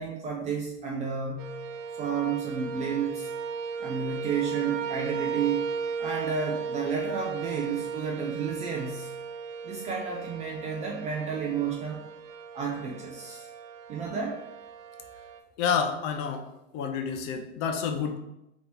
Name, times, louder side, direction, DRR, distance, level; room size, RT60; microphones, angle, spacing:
voice 1, 0.0-1.5 2.0-3.3 3.8-5.7 6.0-9.1 9.6-12.1 12.5-13.5 13.9-14.4, right 6 dB, 20° right, -2 dB, 0.3 m, -31 dB
sound 1, 1.4-15.4, right 5 dB, 85° right, 0.7 m, -36 dB
voice 2, 15.6-16.5 16.7-18.2, left 6 dB, 40° left, 5 dB, 0.6 m, -29 dB
3.6 x 2.9 x 3.9 m, 0.87 s
supercardioid pair, 130°, 38 cm